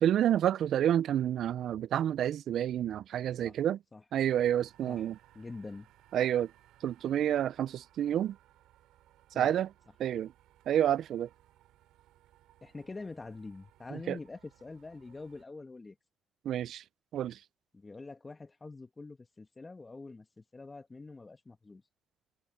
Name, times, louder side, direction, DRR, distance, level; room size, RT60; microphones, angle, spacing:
voice 1, 0.0-3.8 4.1-5.2 6.1-6.5 6.8-8.4 9.4-9.7 10.0-10.3 10.7-11.3 14.1-14.2 16.4-16.8 17.1-17.4, right 10 dB, 70° right, 0.3 m, -29 dB
sound 1, 4.3-15.4, right 14 dB, 90° right, 3.0 m, -63 dB
voice 2, 5.3-5.9 9.3-9.6 12.6-16.0 17.7-21.8, left 3 dB, 25° left, 1.9 m, -45 dB
cardioid pair, 80°, 0 cm